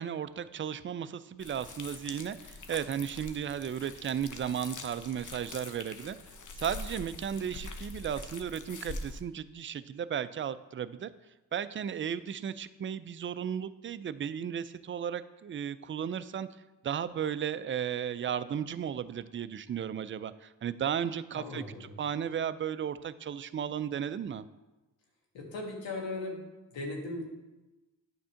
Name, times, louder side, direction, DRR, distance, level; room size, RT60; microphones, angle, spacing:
voice 1, 0.0-6.2 6.6-11.1 11.5-16.5 16.8-24.4, right 8 dB, 30° right, 14 dB, 0.4 m, -35 dB
sound 1, 1.4-9.2, left 3 dB, 45° left, 0.9 m, -44 dB
voice 2, 21.3-21.9 25.3-27.2, left 2 dB, 85° left, 0 dB, 1.6 m, -38 dB
8.6 x 3.7 x 5.7 m, 1.1 s
supercardioid pair, 50°, 44 cm